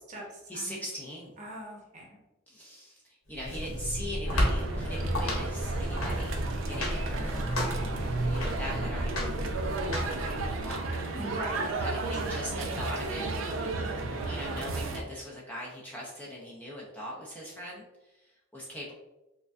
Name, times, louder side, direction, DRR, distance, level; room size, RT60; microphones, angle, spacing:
voice 1, 0.5-1.3 2.5-6.4 6.7-7.7 8.2-9.4 10.1-10.9 11.8-13.3 14.2-18.9, equal, 10° left, -4 dB, 0.5 m, -41 dB
voice 2, 1.4-2.1 7.2-8.1 11.1-12.8 13.6-13.9, right 1 dB, 35° right, -1 dB, 0.8 m, -41 dB
sound 1, 3.3-10.8, equal, 85° left, 1.0 m, -32 dB
sound 2, 4.3-15.0, right 3 dB, 65° right, 0.4 m, -34 dB
4.9 x 2.3 x 2.4 m, 1.0 s
head